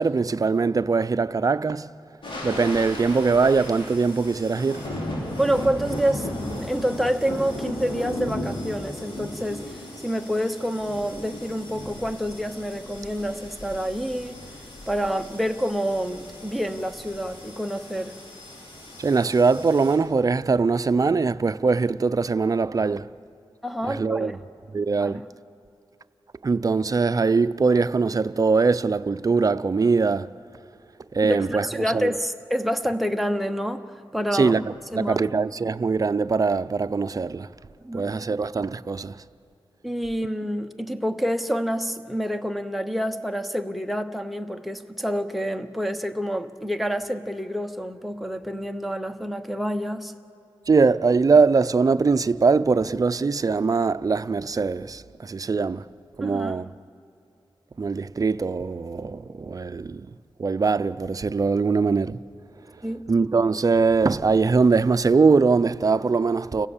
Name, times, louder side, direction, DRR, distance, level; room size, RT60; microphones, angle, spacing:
voice 1, 0.0-1.9 2.4-4.9 19.0-23.1 23.9-24.3 24.7-25.2 26.4-30.3 31.1-31.7 31.9-32.1 34.3-37.5 37.9-39.2 50.7-55.9 56.2-56.7 57.8-60.1 60.4-62.2 63.1-66.7, right 4 dB, 40° right, 0.5 m, -22 dB
sound 1, 2.2-20.0, left 1 dB, 75° left, 5.4 m, -36 dB
voice 2, 5.4-9.7 10.0-14.3 14.9-18.2 23.6-24.3 25.0-25.2 31.2-33.9 34.1-34.5 34.9-35.2 37.8-38.0 39.8-50.1 56.2-56.5 62.8-63.0, equal, ahead, 1.0 m, -27 dB
29.5 x 16.5 x 7.3 m
wide cardioid pair, 75°, 9 cm